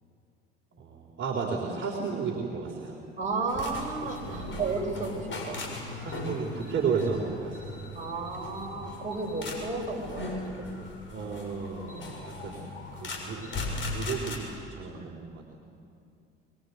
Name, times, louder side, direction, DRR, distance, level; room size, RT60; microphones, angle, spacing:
voice 1, 0.8-3.0 4.3-4.5 6.0-7.8 11.1-12.6 12.9-13.4 13.9-14.4 14.7-15.4, right 5 dB, 40° right, -2 dB, 3.9 m, -33 dB
voice 2, 3.2-5.7 7.9-10.7 14.9-15.5, right 3 dB, 25° right, -1 dB, 6.6 m, -34 dB
sound 1, 3.5-14.4, left 2 dB, 40° left, 6.8 m, -38 dB
24.0 x 23.0 x 8.2 m, 2.5 s
hypercardioid pair, 65°, 30 cm